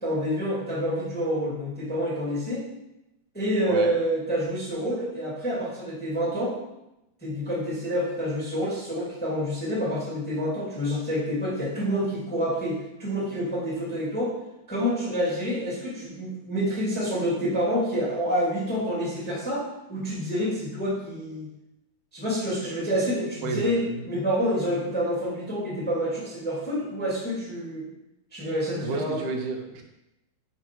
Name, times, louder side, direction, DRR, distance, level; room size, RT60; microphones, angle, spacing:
voice 1, 0.0-2.6 3.3-6.5 7.2-14.3 14.7-19.6 19.9-21.5 22.1-23.8 24.1-27.8 28.3-29.2, equal, 5° left, -7 dB, 1.4 m, -28 dB
voice 2, 23.4-24.1 28.8-29.8, right 3 dB, 80° right, 2 dB, 2.2 m, -31 dB
5.0 x 4.6 x 4.4 m, 0.90 s
omnidirectional pair, 3.5 m